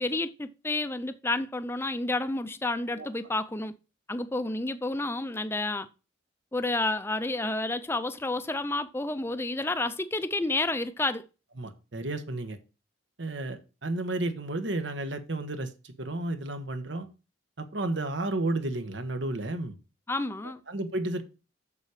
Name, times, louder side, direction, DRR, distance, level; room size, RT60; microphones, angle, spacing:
voice 1, 0.0-3.7 4.1-5.9 6.5-11.2 20.1-20.6, left 2 dB, 10° left, 0.5 m, -30 dB
voice 2, 11.6-12.6 13.2-17.1 17.6-19.7 20.7-21.2, right 2 dB, 70° right, 1.2 m, -32 dB
7.3 x 7.0 x 4.9 m
head